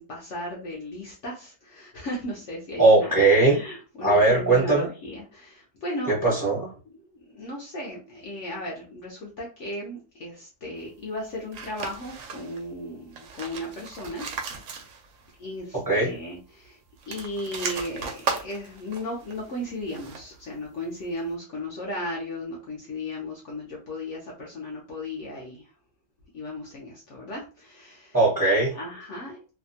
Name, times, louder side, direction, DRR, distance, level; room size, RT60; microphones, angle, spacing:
voice 1, 0.0-6.2 7.2-14.6 15.4-16.8 17.1-25.7 26.3-28.2 28.7-29.4, left 1 dB, 65° left, -2 dB, 0.7 m, -36 dB
voice 2, 2.8-3.6 4.0-4.9 6.1-6.7 15.9-16.1 28.1-28.7, right 3 dB, 20° right, -5 dB, 0.5 m, -19 dB
sound 1, 11.5-12.7 13.0-15.3 15.6-15.7 16.9-20.4, right 5 dB, 70° right, 0.8 m, -36 dB
2.8 x 2.2 x 2.6 m, 0.36 s
omnidirectional pair, 1.8 m